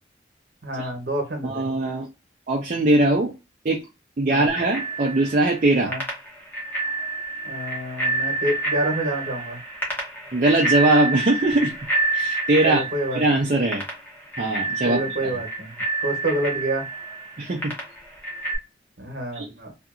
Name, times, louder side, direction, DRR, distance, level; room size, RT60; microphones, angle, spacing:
voice 1, 0.6-1.7 4.3-4.5 5.8-6.0 7.4-9.6 12.6-13.4 14.8-16.9 19.0-19.7, right 1 dB, 65° right, 2 dB, 1.0 m, -28 dB
voice 2, 1.4-2.1 2.5-3.3 3.6-3.8 4.2-5.9 10.3-11.7 12.1-12.8 13.1-13.8 14.4-15.3 17.4-17.7 19.3-19.5, right 2 dB, 45° right, 0 dB, 0.5 m, -21 dB
Bicycle bell, 4.5-18.6, right 2 dB, 10° left, 0.8 m, -29 dB
2.7 x 2.6 x 2.5 m, 0.28 s
head